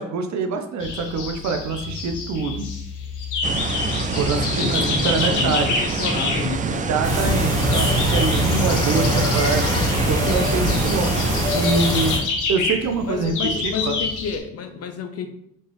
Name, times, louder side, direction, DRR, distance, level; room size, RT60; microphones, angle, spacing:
voice 1, 0.0-2.7 4.2-5.7 6.6-9.7 10.0-11.1 11.5-12.2 12.5-13.9, right 4 dB, 65° right, 6 dB, 0.7 m, -25 dB
sound 1, 0.8-14.4, left 4 dB, 85° left, 0.9 m, -28 dB
sound 2, 3.4-11.5, right 4 dB, 25° right, 0.3 m, -26 dB
voice 2, 4.4-6.9 13.0-15.3, left 6 dB, 55° left, 7 dB, 0.6 m, -30 dB
sound 3, 7.0-12.2, equal, 10° left, 1.6 m, -23 dB
4.4 x 3.0 x 3.1 m, 0.75 s
cardioid pair, 90°, 30 cm